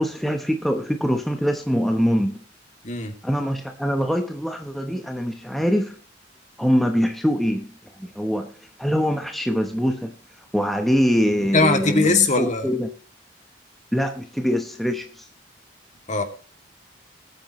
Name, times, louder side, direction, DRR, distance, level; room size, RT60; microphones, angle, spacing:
voice 1, 0.0-2.4 3.2-6.0 6.6-7.7 8.0-8.5 8.8-12.9 13.9-15.3, equal, ahead, 4 dB, 0.9 m, -23 dB
voice 2, 11.5-12.7 16.1-16.2, left 3 dB, 40° left, 5 dB, 2.5 m, -20 dB
21.5 x 9.1 x 3.1 m, 0.38 s
head